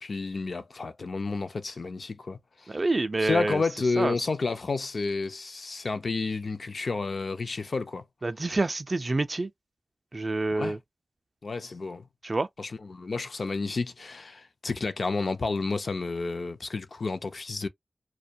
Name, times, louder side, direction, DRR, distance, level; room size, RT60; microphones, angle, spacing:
voice 1, 0.0-2.8 3.2-8.0 10.5-10.8 11.4-12.0 12.6-17.7, left 3 dB, 60° left, 0.4 m, -31 dB
voice 2, 2.7-3.6 4.0-4.1 8.2-9.5 10.1-10.8 12.2-12.5, right 2 dB, 40° right, 0.3 m, -27 dB
2.2 x 2.2 x 2.6 m
wide cardioid pair, 90°, 0 cm